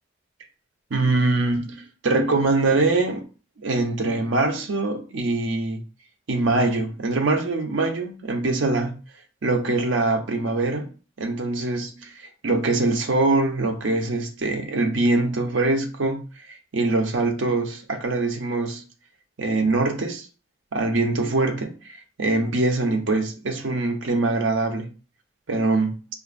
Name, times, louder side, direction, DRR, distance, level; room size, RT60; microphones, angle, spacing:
voice 1, 0.9-3.2 3.6-5.8 6.3-8.9 9.4-10.9 11.2-12.1 12.4-16.2 16.7-18.8 19.4-20.3 20.7-21.8 22.2-24.9 25.5-26.1, right 2 dB, 85° right, 0.7 m, -23 dB
4.8 x 2.5 x 2.5 m
head